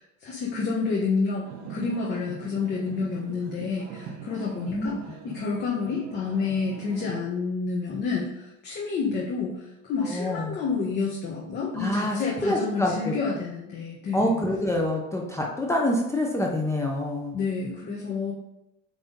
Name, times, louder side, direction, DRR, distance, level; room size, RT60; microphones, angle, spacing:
voice 1, 0.0-5.0 5.2-14.4 17.3-18.3, left 4 dB, 30° left, -4 dB, 1.3 m, -29 dB
sound 1, 1.4-7.2, right 7 dB, 55° right, 1.0 m, -42 dB
voice 2, 4.5-5.0 10.0-10.6 11.7-13.2 14.1-17.4, left 1 dB, 10° left, 0 dB, 0.8 m, -26 dB
8.1 x 3.5 x 5.2 m, 0.90 s
cardioid pair, 150°, 31 cm